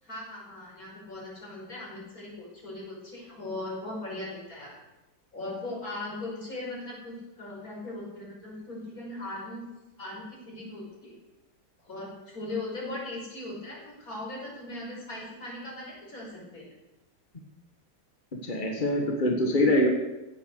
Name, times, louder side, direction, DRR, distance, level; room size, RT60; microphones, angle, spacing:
voice 1, 0.0-4.8 5.3-9.6 10.0-11.2 11.8-16.7, left 2 dB, 55° left, -4 dB, 5.8 m, -39 dB
voice 2, 18.4-19.9, left 1 dB, 30° left, 1 dB, 1.6 m, -24 dB
15.5 x 9.5 x 6.7 m, 1.0 s
omnidirectional pair, 1.8 m